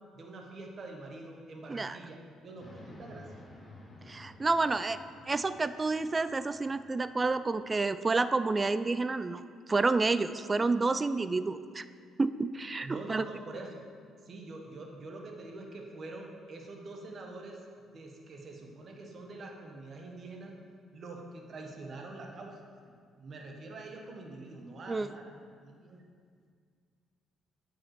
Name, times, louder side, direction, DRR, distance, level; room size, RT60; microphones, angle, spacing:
voice 1, 0.1-3.3 12.8-13.9 14.2-20.6 20.9-26.1, right 2 dB, 50° right, 1 dB, 1.1 m, -45 dB
sound 1, 2.6-8.0, left 1 dB, 20° left, 1.3 m, -54 dB
voice 2, 4.1-9.4 9.7-11.9 12.2-13.3 24.9-25.1, right 3 dB, 30° right, 13 dB, 0.3 m, -29 dB
7.3 x 5.0 x 4.6 m, 2.1 s
hypercardioid pair, 55°, 0 cm